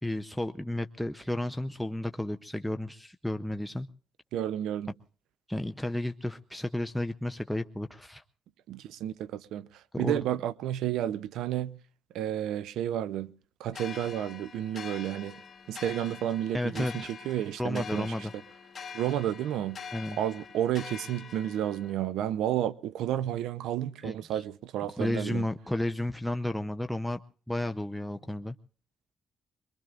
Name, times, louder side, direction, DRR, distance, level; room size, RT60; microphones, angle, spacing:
voice 1, 0.0-3.9 5.5-8.2 9.9-10.2 16.5-17.1 17.6-18.3 19.9-20.2 24.0-24.4 25.0-27.2 27.5-28.5, left 1 dB, ahead, 0.7 m, -32 dB
voice 2, 4.3-4.9 8.7-11.8 12.1-13.3 13.6-15.4 15.7-18.1 18.9-19.8 20.1-25.5, right 11 dB, 85° right, 0.7 m, -31 dB
sound 1, 13.7-21.9, left 6 dB, 40° left, 1.6 m, -45 dB
23.5 x 22.5 x 2.5 m
cardioid pair, 90°, 0 cm